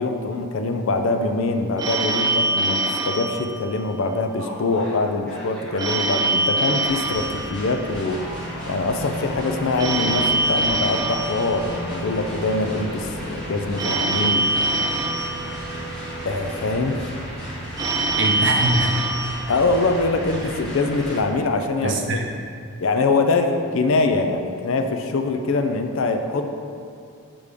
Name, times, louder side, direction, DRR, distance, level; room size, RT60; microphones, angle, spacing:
voice 1, 0.0-8.2 8.7-14.5 16.3-17.0 19.5-22.2 22.8-26.5, left 3 dB, 60° left, 6 dB, 0.4 m, -23 dB
Telephone, 1.8-4.3 5.8-8.3 9.8-12.3 13.8-16.3 17.8-20.3, right 2 dB, 15° right, 0.3 m, -24 dB
sound 1, 4.4-21.2, equal, 5° left, 1.5 m, -34 dB
voice 2, 18.2-19.0 20.4-20.5 21.8-22.3, right 2 dB, 55° right, 2 dB, 0.7 m, -23 dB
6.5 x 5.2 x 3.5 m, 2.4 s
head